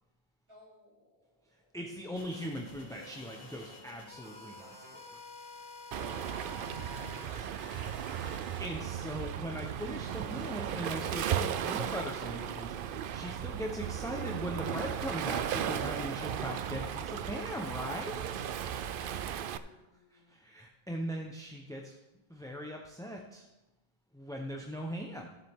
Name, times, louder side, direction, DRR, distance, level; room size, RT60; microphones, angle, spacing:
voice 1, 0.5-2.6 6.0-8.0 8.3-9.4 18.7-20.4, left 1 dB, 30° right, -6 dB, 3.4 m, -61 dB
voice 2, 1.7-5.2 8.6-18.4 19.6-19.7 20.1-22.0 22.3-23.5 24.1-25.4, equal, 5° left, 0 dB, 0.8 m, -40 dB
sound 1, 2.2-8.6, left 3 dB, 55° left, 1.7 m, -50 dB
Waves surf, 5.9-19.6, right 9 dB, 65° right, 0.7 m, -36 dB
15.5 x 7.5 x 3.6 m, 0.99 s
omnidirectional pair, 1.0 m